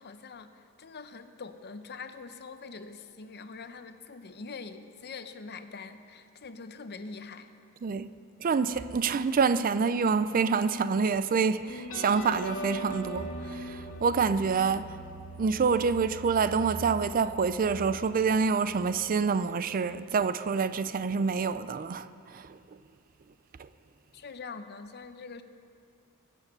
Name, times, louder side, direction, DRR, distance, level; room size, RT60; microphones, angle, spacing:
voice 1, 0.0-7.5 24.1-25.4, left 4 dB, 50° left, 0.7 m, -44 dB
voice 2, 8.4-15.0 15.4-22.6 23.6-23.7, right 5 dB, 40° right, 0.4 m, -27 dB
sound 1, 11.7-18.8, right 1 dB, 70° left, 2.4 m, -41 dB
22.0 x 7.3 x 6.8 m
head